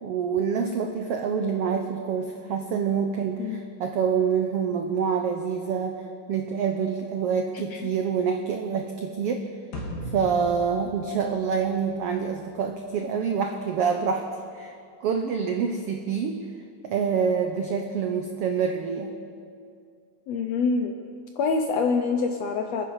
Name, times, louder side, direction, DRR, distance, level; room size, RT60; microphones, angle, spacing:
voice 1, 0.0-6.0 6.3-9.5 10.1-14.3 14.5-14.7 15.0-16.4 16.8-19.2, right 6 dB, 90° right, 4 dB, 1.3 m, -26 dB
sound 1, 9.7-12.2, equal, 60° left, 3.2 m, -38 dB
voice 2, 20.3-21.0 21.4-22.8, left 4 dB, 75° left, 5 dB, 1.6 m, -25 dB
27.0 x 10.5 x 4.8 m, 2.3 s
omnidirectional pair, 3.8 m